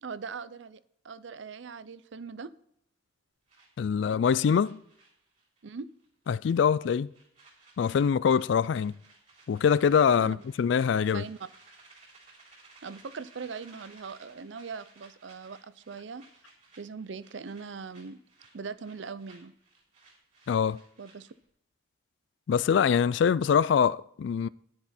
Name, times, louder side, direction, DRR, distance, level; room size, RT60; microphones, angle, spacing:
voice 1, 0.0-2.5 5.6-5.9 10.2-10.4 11.1-11.4 12.8-16.2 16.8-18.2 18.5-19.5 21.0-21.3, right 5 dB, 70° right, 0.5 m, -41 dB
sound 1, 3.5-5.7 6.0-6.3 6.6-21.5, right 3 dB, 40° right, 3.6 m, -58 dB
voice 2, 3.8-4.8 6.3-7.1 7.8-9.0 9.5-11.3 20.5-20.8 22.5-24.5, left 7 dB, 65° left, 0.3 m, -24 dB
10.5 x 9.7 x 4.2 m
head